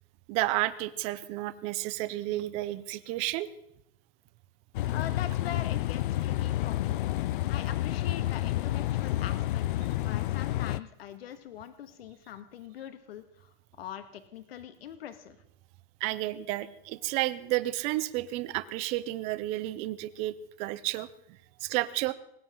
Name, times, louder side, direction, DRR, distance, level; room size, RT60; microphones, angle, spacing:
voice 1, 0.3-3.5 16.0-22.1, right 17 dB, 20° right, 14 dB, 0.5 m, -31 dB
sound 1, 4.7-10.8, left 14 dB, 60° left, 0.5 m, -30 dB
voice 2, 4.9-7.0 7.5-15.4, left 10 dB, 75° left, 10 dB, 1.9 m, -43 dB
19.5 x 17.0 x 3.8 m, 0.75 s
supercardioid pair, 170°, 30 cm